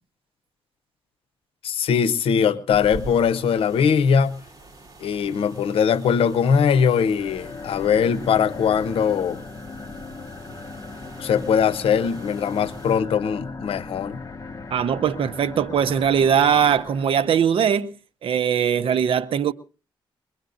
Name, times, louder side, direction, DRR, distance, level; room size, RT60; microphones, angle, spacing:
voice 1, 1.6-4.4 5.0-9.4 11.2-14.2, left 7 dB, 90° left, 0.8 m, -21 dB
sound 1, 2.7-13.0, right 2 dB, 40° right, 3.5 m, -44 dB
sound 2, 7.1-17.6, left 3 dB, 35° left, 1.2 m, -38 dB
voice 2, 14.7-17.9 18.2-19.5, right 8 dB, 75° right, 0.8 m, -20 dB
23.5 x 21.0 x 2.6 m
cardioid pair, 95°, 9 cm